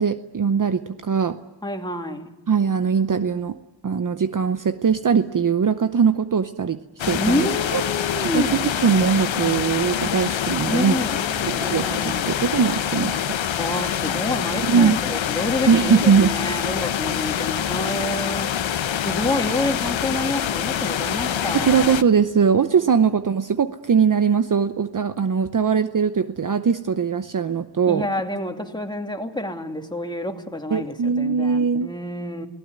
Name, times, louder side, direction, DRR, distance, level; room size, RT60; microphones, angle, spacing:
voice 1, 0.0-1.4 2.5-3.6 3.8-6.8 7.0-7.8 8.3-11.0 11.5-13.7 14.7-15.0 15.7-16.4 21.5-28.1 30.7-31.9, right 6 dB, 45° right, 11 dB, 0.8 m, -21 dB
voice 2, 1.6-2.3 7.2-8.8 10.7-12.3 13.6-18.5 19.0-21.9 27.9-32.5, left 1 dB, 10° left, 4 dB, 2.5 m, -28 dB
sound 1, 7.0-22.0, left 9 dB, 85° left, 1.0 m, -25 dB
28.0 x 18.0 x 9.6 m, 1.1 s
wide cardioid pair, 125°, 45 cm